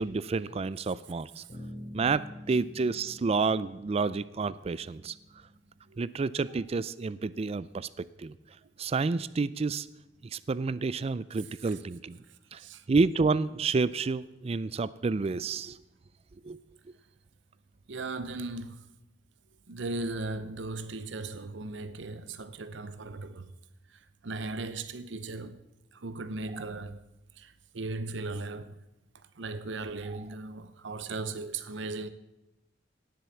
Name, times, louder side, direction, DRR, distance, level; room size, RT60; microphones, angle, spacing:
voice 1, 0.0-1.4 1.9-5.1 6.0-7.9 8.2-8.3 8.8-9.9 10.3-12.2 12.5-12.6 12.9-15.8 16.4-16.6, right 4 dB, 35° right, 0.4 m, -29 dB
Bass guitar, 1.5-5.9, equal, 40° left, 6.3 m, -47 dB
voice 2, 17.9-18.9 19.7-23.5 24.2-25.6 25.9-27.0 27.4-28.7 29.4-32.1, right 3 dB, 80° right, 0.8 m, -37 dB
17.5 x 7.7 x 6.9 m
head